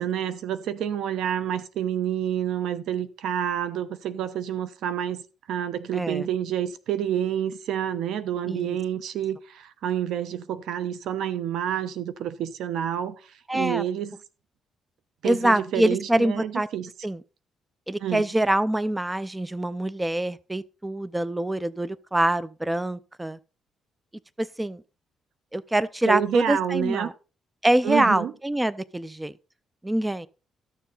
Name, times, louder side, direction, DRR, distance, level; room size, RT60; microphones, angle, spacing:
voice 1, 0.0-5.2 5.5-14.1 15.2-16.9 18.0-18.3 26.1-27.1 27.8-28.3, right 10 dB, 80° right, 0.9 m, -28 dB
voice 2, 5.9-6.3 8.5-8.8 13.5-13.8 15.2-16.7 17.0-17.2 17.9-23.4 24.4-24.8 25.5-27.1 27.6-29.3 29.8-30.3, right 1 dB, 10° right, 0.5 m, -25 dB
13.0 x 6.8 x 4.0 m
cardioid pair, 90°, 0 cm